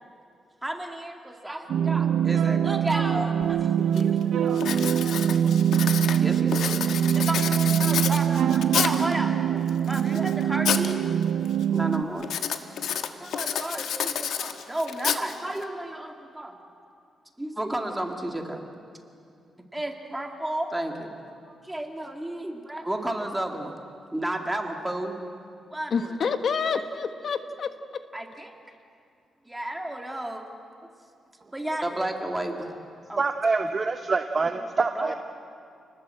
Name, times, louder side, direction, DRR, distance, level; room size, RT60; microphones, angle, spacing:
voice 1, 0.6-5.6 6.2-6.8 7.1-11.0 11.7-12.3 12.9-16.6 17.4-18.6 19.7-21.1 21.4-23.8 24.1-25.1 25.7-26.2 26.7-26.8 28.1-28.5 29.5-30.4 31.5-32.7 33.1-33.2 34.9-35.1, right 1 dB, 10° right, 3 dB, 2.3 m, -32 dB
sound 1, 1.7-12.0, right 9 dB, 80° right, 0.8 m, -23 dB
Writing, 3.4-3.5 4.0-4.2 4.6-9.1 9.7-10.9 11.2-11.6 12.2-15.6, left 8 dB, 80° left, 1.4 m, -30 dB
voice 2, 25.9-27.7, left 5 dB, 55° left, 8 dB, 1.4 m, -27 dB
voice 3, 33.2-35.1, right 4 dB, 35° right, 6 dB, 1.0 m, -25 dB
30.0 x 20.0 x 7.8 m, 2.4 s
cardioid pair, 115°, 0 cm